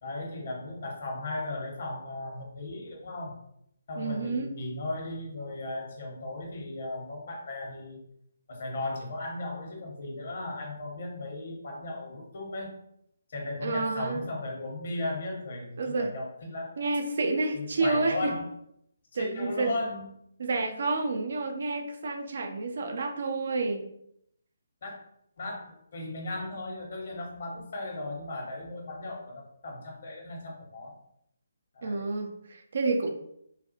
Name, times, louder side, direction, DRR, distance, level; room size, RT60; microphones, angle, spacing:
voice 1, 0.0-3.4 3.9-8.0 8.5-12.8 13.3-16.7 17.5-18.5 19.1-20.1 24.8-25.0 25.4-31.0 31.7-32.1, left 2 dB, 45° left, 0 dB, 1.0 m, -36 dB
voice 2, 4.0-4.5 13.6-14.2 15.8-16.1 16.8-18.3 19.1-19.7 20.4-23.9 31.8-33.1, right 3 dB, 50° right, 4 dB, 0.4 m, -29 dB
3.9 x 2.3 x 2.8 m, 0.74 s
figure-of-eight pair, 140°, 0 cm